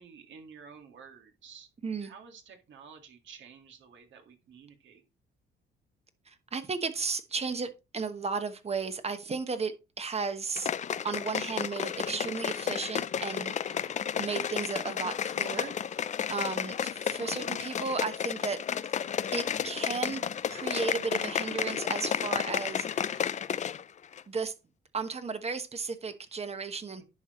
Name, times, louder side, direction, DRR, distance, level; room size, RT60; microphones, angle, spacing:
voice 1, 0.0-1.7 2.0-5.0 13.7-14.0 16.5-16.7 26.9-27.0, right 6 dB, 70° right, 1.9 m, -52 dB
voice 2, 6.3-10.7 11.0-13.8 14.2-18.9 19.3-23.3 24.3-24.5 24.9-27.0, right 4 dB, 30° right, 1.1 m, -34 dB
sound 1, 10.6-23.8 24.1-24.2, left 8 dB, 35° left, 0.4 m, -32 dB
11.0 x 4.8 x 3.1 m
cardioid pair, 90°, 20 cm